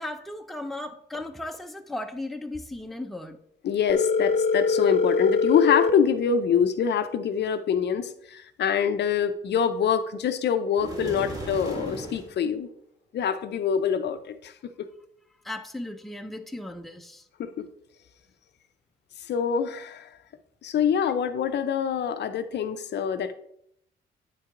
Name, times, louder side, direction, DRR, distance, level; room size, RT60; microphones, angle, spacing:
voice 1, 0.0-3.4 15.4-17.3, left 1 dB, ahead, 5 dB, 0.6 m, -36 dB
voice 2, 3.6-12.7 13.1-14.5 17.4-17.7 19.3-20.1 20.6-23.3, left 7 dB, 60° left, 10 dB, 0.5 m, -25 dB
Telephone, 3.9-5.9, left 4 dB, 35° left, 0.8 m, -23 dB
sound 1, 10.8-12.3, right 1 dB, 20° right, 2.5 m, -36 dB
9.1 x 4.4 x 3.7 m, 0.73 s
cardioid pair, 90°, 20 cm